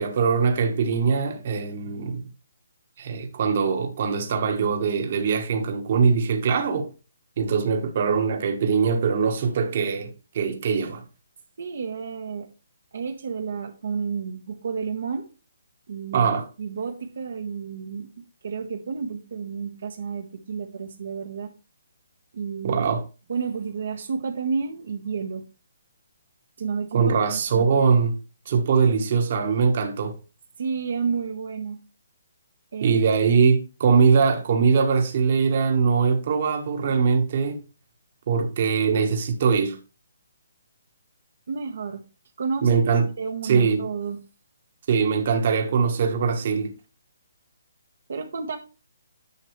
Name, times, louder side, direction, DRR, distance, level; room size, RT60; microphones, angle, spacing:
voice 1, 0.0-2.2 3.0-6.9 7.4-11.0 16.1-16.5 22.6-23.0 26.9-28.2 28.5-30.2 32.8-37.6 38.3-39.8 42.6-43.1 43.4-43.8 44.9-46.7, right 5 dB, 45° right, 1.5 m, -22 dB
voice 2, 11.6-12.5 12.9-15.3 15.9-16.3 16.6-18.1 18.4-21.5 22.3-22.8 23.3-25.4 26.6-27.7 30.6-31.8 32.7-33.2 41.5-42.0 42.4-42.8 43.2-44.2 48.1-48.6, right 5 dB, 65° right, 1.3 m, -31 dB
10.0 x 5.8 x 3.2 m
hypercardioid pair, 160°, 0 cm